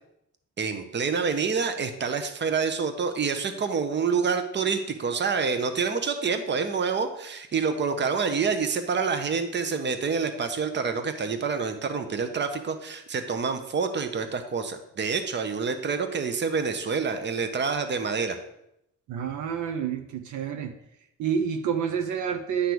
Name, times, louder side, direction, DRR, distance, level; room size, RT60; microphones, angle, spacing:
voice 1, 0.6-18.4, right 5 dB, 35° right, 8 dB, 0.9 m, -27 dB
voice 2, 19.1-20.7 21.2-22.7, right 7 dB, 75° right, 7 dB, 0.8 m, -28 dB
9.8 x 3.3 x 6.1 m, 0.81 s
cardioid pair, 90°, 30 cm